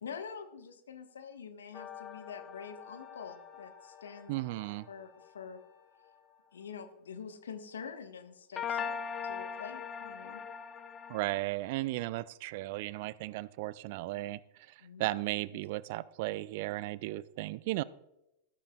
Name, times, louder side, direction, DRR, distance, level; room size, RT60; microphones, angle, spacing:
voice 1, 0.0-4.3 4.9-5.6 6.5-10.4 14.8-15.1 15.5-15.7, left 6 dB, 65° left, 10 dB, 0.9 m, -46 dB
sound 1, 1.7-5.3 8.6-11.4, left 7 dB, 25° left, 0.6 m, -41 dB
Wind instrument woodwind instrument, 2.5-6.6, left 4 dB, 45° left, 3.8 m, -62 dB
voice 2, 4.3-4.9 11.1-14.4 15.0-17.8, right 18 dB, 50° right, 19 dB, 0.3 m, -35 dB
13.5 x 11.5 x 2.3 m, 0.88 s
figure-of-eight pair, 90°, 0 cm